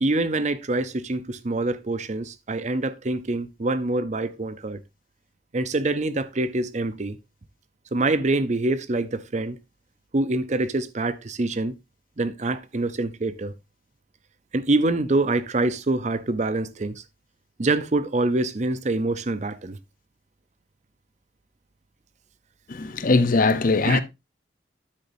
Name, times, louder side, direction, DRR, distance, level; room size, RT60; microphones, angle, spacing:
voice 1, 0.0-4.8 5.5-7.2 7.9-9.6 10.1-11.7 12.2-13.5 14.5-17.0 17.6-19.8 23.9-24.0, right 2 dB, 40° right, 0.6 m, -25 dB
voice 2, 22.7-24.0, left 3 dB, 50° left, 0.7 m, -20 dB
9.8 x 8.1 x 2.7 m
head